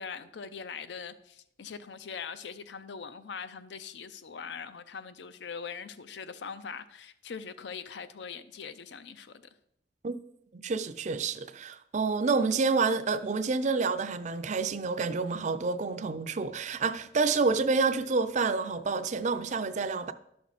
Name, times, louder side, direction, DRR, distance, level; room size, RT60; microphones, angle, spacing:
voice 1, 0.0-9.4, left 6 dB, 70° left, 0.5 m, -42 dB
voice 2, 10.5-20.1, right 4 dB, 40° right, 0.4 m, -28 dB
11.5 x 6.0 x 4.1 m
head